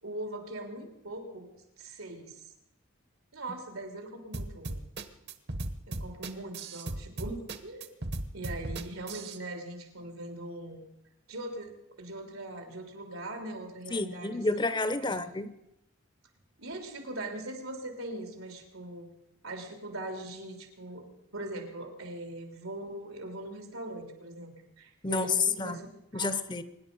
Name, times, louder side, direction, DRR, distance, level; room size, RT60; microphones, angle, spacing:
voice 1, 0.0-2.4 3.3-4.8 5.9-7.9 8.3-10.8 11.3-14.7 15.0-15.2 16.6-19.1 19.4-21.1 21.3-25.9 26.1-26.4, right 1 dB, 90° right, 4 dB, 3.4 m, -41 dB
sound 1, 4.3-9.4, right 2 dB, 50° right, 1.1 m, -36 dB
voice 2, 13.9-15.5 25.0-25.8 26.1-26.6, left 3 dB, 20° left, 14 dB, 0.6 m, -29 dB
24.5 x 10.5 x 5.4 m, 0.86 s
head